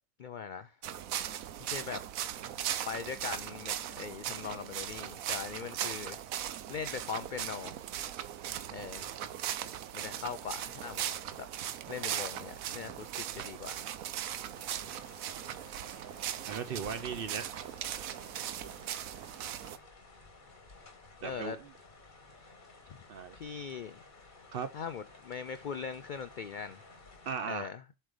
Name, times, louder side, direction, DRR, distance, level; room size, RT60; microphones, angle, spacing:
voice 1, 0.2-0.8 1.6-2.0 2.9-6.2 6.7-7.8 8.7-9.1 9.9-11.1 11.4-11.5 11.9-13.9 21.2-21.6 23.3-24.0 24.7-26.8 27.4-27.8, left 6 dB, 75° left, 0.4 m, -40 dB
sound 1, 0.8-19.8, right 11 dB, 85° right, 1.1 m, -39 dB
sound 2, 14.5-27.3, left 3 dB, 40° left, 1.4 m, -55 dB
voice 2, 16.5-17.5 21.2-21.6 23.1-23.4 24.5-24.7 27.3-27.7, right 6 dB, 55° right, 0.7 m, -37 dB
7.4 x 3.3 x 5.0 m
omnidirectional pair, 1.4 m